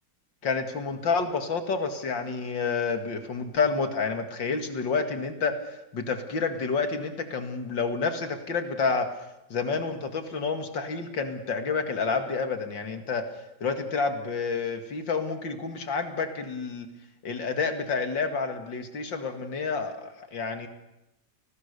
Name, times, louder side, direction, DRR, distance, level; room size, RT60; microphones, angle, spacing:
voice 1, 0.4-5.6 5.9-9.1 9.5-13.3 13.6-16.9 17.2-20.7, left 4 dB, 75° left, 7 dB, 2.9 m, -29 dB
29.5 x 20.0 x 6.9 m, 0.91 s
omnidirectional pair, 2.0 m